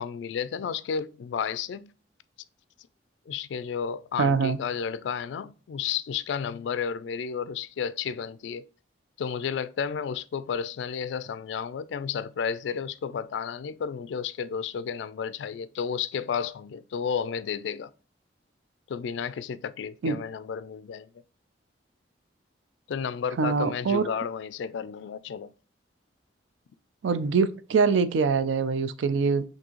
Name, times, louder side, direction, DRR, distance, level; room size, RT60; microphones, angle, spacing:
voice 1, 0.0-1.9 3.3-8.7 9.2-17.9 18.9-21.1 22.9-25.5, left 7 dB, 70° left, 0.3 m, -32 dB
voice 2, 4.2-4.6 20.0-20.2 23.4-24.0 27.0-29.4, right 5 dB, 80° right, 0.4 m, -24 dB
6.0 x 2.7 x 3.0 m
head